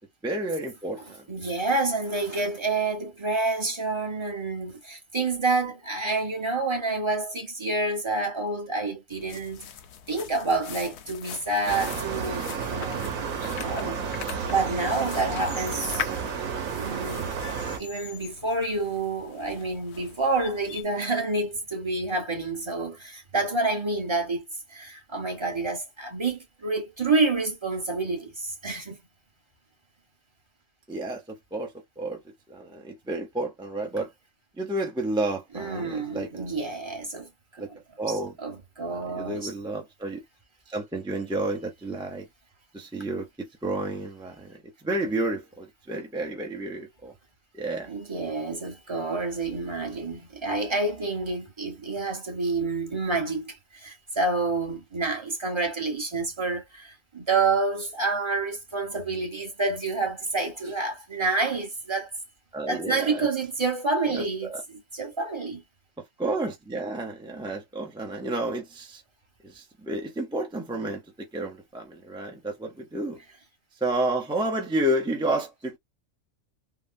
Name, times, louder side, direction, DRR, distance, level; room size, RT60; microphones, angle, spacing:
voice 1, 0.2-1.3 30.9-34.1 34.6-36.6 37.6-37.7 38.0-38.3 38.9-40.2 40.7-42.3 42.7-47.1 47.5-47.9 62.5-63.3 64.1-64.6 66.0-69.0 69.4-73.2 73.8-75.8, right 1 dB, 5° right, 0.3 m, -31 dB
voice 2, 1.3-9.7 10.1-13.0 13.5-14.1 14.5-15.8 16.7-17.3 17.8-24.4 24.7-29.0 35.5-37.3 37.6-37.8 38.4-39.5 47.9-62.1 62.7-65.6, right 3 dB, 25° right, 0.9 m, -28 dB
sound 1, 9.1-20.8, left 9 dB, 65° left, 0.8 m, -41 dB
sound 2, 11.7-17.8, right 6 dB, 85° right, 1.2 m, -31 dB
3.7 x 2.0 x 2.5 m
omnidirectional pair, 1.4 m